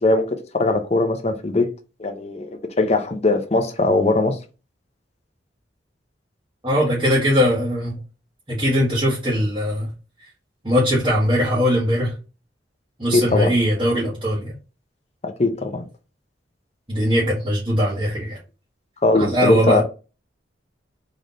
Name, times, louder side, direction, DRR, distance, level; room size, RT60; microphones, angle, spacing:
voice 1, 0.0-1.7 2.0-4.4 13.1-13.5 15.2-15.9 19.0-19.8, left 2 dB, 35° left, 0.7 m, -20 dB
voice 2, 6.6-8.0 8.5-9.9 10.6-12.2 13.0-14.5 16.9-18.4 19.2-19.8, equal, 25° right, 1.4 m, -20 dB
3.9 x 3.4 x 3.9 m
head